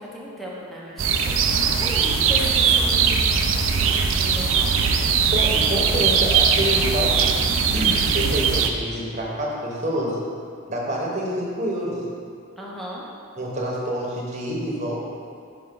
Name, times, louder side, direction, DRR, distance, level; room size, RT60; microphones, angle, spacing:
voice 1, 0.0-4.8 12.6-13.0, equal, ahead, -5 dB, 0.7 m, -36 dB
sound 1, 1.0-8.7, right 6 dB, 60° right, 0.4 m, -20 dB
voice 2, 5.3-7.5 7.7-10.2 10.7-12.0 13.4-15.0, equal, 30° right, -4 dB, 1.0 m, -27 dB
5.7 x 5.5 x 3.7 m, 2.3 s
head